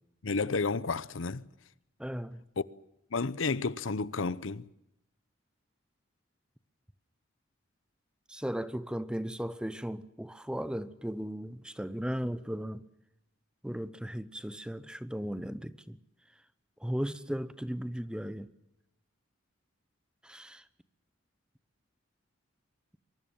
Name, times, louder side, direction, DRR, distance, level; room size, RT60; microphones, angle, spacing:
voice 1, 0.2-1.4 2.6-2.7 3.1-4.7, left 4 dB, 85° left, 0.8 m, -31 dB
voice 2, 2.0-2.4 8.3-12.8 13.6-16.0 16.8-18.5 20.2-20.6, equal, 5° right, 0.9 m, -36 dB
23.0 x 23.0 x 7.2 m
head